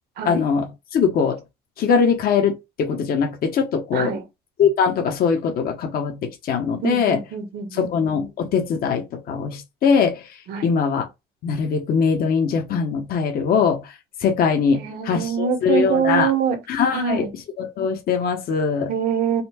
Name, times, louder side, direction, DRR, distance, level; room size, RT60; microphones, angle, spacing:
voice 1, 0.2-1.4 1.8-4.1 4.6-7.2 7.7-11.1 11.4-16.3 16.7-17.3 17.6-18.9, left 6 dB, 60° left, 1.1 m, -21 dB
voice 2, 3.9-4.2 6.8-7.9 10.5-10.7 14.8-16.6 16.9-17.3 18.9-19.4, right 7 dB, 70° right, 1.4 m, -24 dB
4.2 x 2.3 x 4.2 m
cardioid pair, 110°, 17 cm